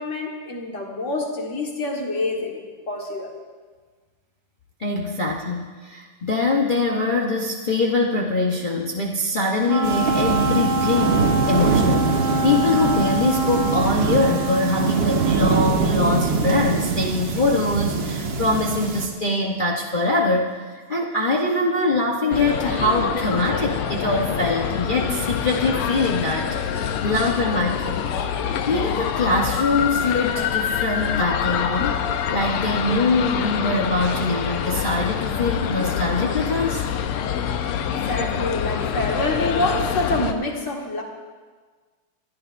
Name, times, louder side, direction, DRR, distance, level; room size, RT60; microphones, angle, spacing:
voice 1, 0.0-3.3 38.0-41.0, left 2 dB, 35° left, 0 dB, 1.7 m, -26 dB
voice 2, 4.8-12.1 12.4-28.0 28.7-32.0 32.3-36.8, left 2 dB, 70° left, -2 dB, 0.4 m, -23 dB
Wind instrument woodwind instrument, 9.6-15.7, right 2 dB, 45° right, 1.4 m, -25 dB
sound 1, 9.8-19.1, right 4 dB, 65° right, 2.0 m, -23 dB
sound 2, 22.3-40.3, left 8 dB, 85° left, 1.7 m, -26 dB
24.0 x 12.0 x 2.6 m, 1.4 s
omnidirectional pair, 2.4 m